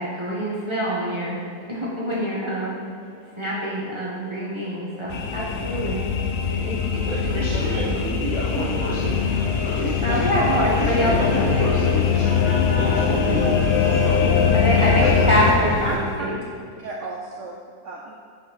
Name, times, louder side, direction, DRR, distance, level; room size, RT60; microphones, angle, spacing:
voice 1, 0.0-6.0 6.4-7.9 9.4-9.5 10.0-11.8 14.5-16.4, equal, 20° right, -6 dB, 1.0 m, -26 dB
sound 1, 5.1-15.5, left 7 dB, 80° left, 1.2 m, -22 dB
voice 2, 7.0-9.2 9.6-10.3 10.8-12.4 12.8-13.6 14.0-15.3, equal, 60° left, -7 dB, 2.4 m, -29 dB
sound 2, 8.6-16.0, left 1 dB, 10° left, 0.9 m, -32 dB
voice 3, 15.8-16.4 16.8-17.6 17.8-18.1, right 3 dB, 65° right, -1 dB, 0.8 m, -32 dB
8.5 x 5.6 x 3.5 m, 2.3 s
omnidirectional pair, 1.7 m